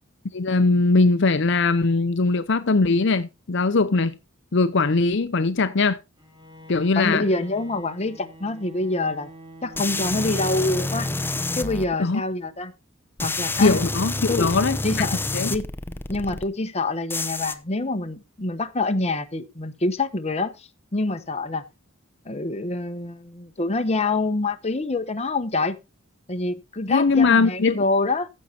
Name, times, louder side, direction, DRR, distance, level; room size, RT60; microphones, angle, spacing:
voice 1, 0.3-4.1 4.5-6.0 6.7-7.2 12.0-12.2 13.6-15.1 15.3-15.5 26.9-27.8, left 3 dB, 60° left, 0.7 m, -20 dB
Bowed string instrument, 6.2-11.5, equal, 20° right, 2.6 m, -46 dB
voice 2, 6.9-9.3 9.6-11.1 11.5-12.7 13.2-13.8 14.3-14.5 14.8-15.2 15.5-21.6 22.2-25.8 26.3-28.3, left 2 dB, 30° left, 1.0 m, -26 dB
sound 1, 9.8-11.9 13.2-16.4 17.1-17.5, left 2 dB, 10° left, 0.8 m, -28 dB
15.0 x 6.5 x 4.3 m
head